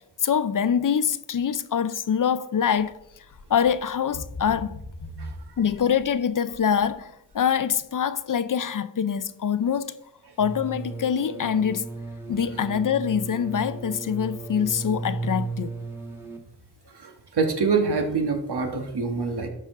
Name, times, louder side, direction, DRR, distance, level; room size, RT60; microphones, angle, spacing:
voice 1, 0.2-3.0 3.5-4.8 5.6-9.9 10.4-11.9 12.3-15.7, left 8 dB, 50° left, 0.5 m, -24 dB
sound 1, 2.8-3.0 3.3-3.7 4.1-6.1 6.5-6.9 7.3-7.4, left 1 dB, 90° left, 1.3 m, -38 dB
sound 2, 10.4-16.4, right 3 dB, 5° right, 1.8 m, -34 dB
voice 2, 17.4-19.5, right 4 dB, 75° right, 1.4 m, -24 dB
12.0 x 5.0 x 3.7 m
cardioid pair, 45°, 40 cm